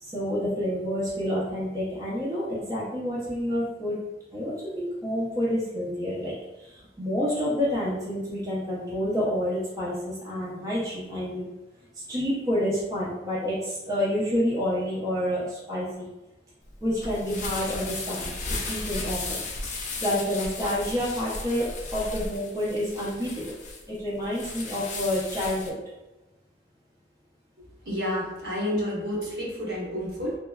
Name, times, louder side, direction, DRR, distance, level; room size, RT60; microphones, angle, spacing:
voice 1, 0.0-4.0 4.3-6.3 6.6-11.5 12.1-16.1 16.8-18.3 18.6-19.4 20.0-23.6 23.9-25.8, equal, 20° right, -8 dB, 0.5 m, -28 dB
sound 1, 16.7-25.7, left 3 dB, 40° left, 0.4 m, -35 dB
voice 2, 27.9-30.4, equal, 65° right, -5 dB, 1.0 m, -30 dB
3.0 x 2.2 x 2.2 m, 1.0 s
head